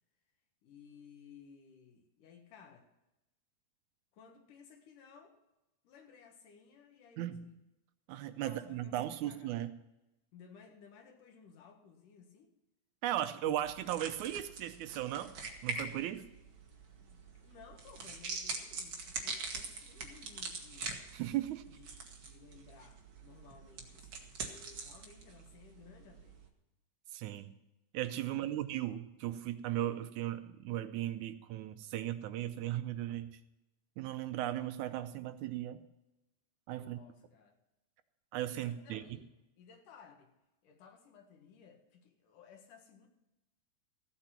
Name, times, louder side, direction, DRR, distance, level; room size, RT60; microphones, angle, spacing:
voice 1, 0.6-2.9 4.1-5.4 5.8-7.6 8.4-9.6 10.3-12.5 17.0-21.0 21.8-26.4 28.2-28.6 36.8-37.6 38.6-39.3 39.6-40.3 40.6-43.1, left 6 dB, 85° left, 3.2 m, -58 dB
voice 2, 7.2-7.5 8.1-9.7 13.0-15.3 15.6-16.3 21.1-21.7 27.1-27.5 27.9-33.4 34.0-35.8 36.7-37.0 38.3-39.2, right 12 dB, 75° right, 2.1 m, -37 dB
sound 1, 13.6-26.5, right 4 dB, 45° right, 2.0 m, -44 dB
15.0 x 8.8 x 5.9 m
omnidirectional pair, 3.6 m